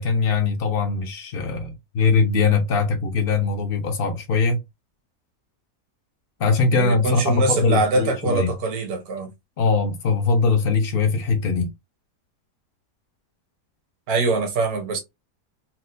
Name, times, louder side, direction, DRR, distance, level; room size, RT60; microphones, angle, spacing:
voice 1, 0.0-4.6 6.4-8.5 9.6-11.7, left 4 dB, 70° left, 0.5 m, -21 dB
voice 2, 6.7-9.3 14.1-15.0, right 3 dB, 65° right, 1.4 m, -23 dB
4.3 x 2.1 x 2.5 m
omnidirectional pair, 1.7 m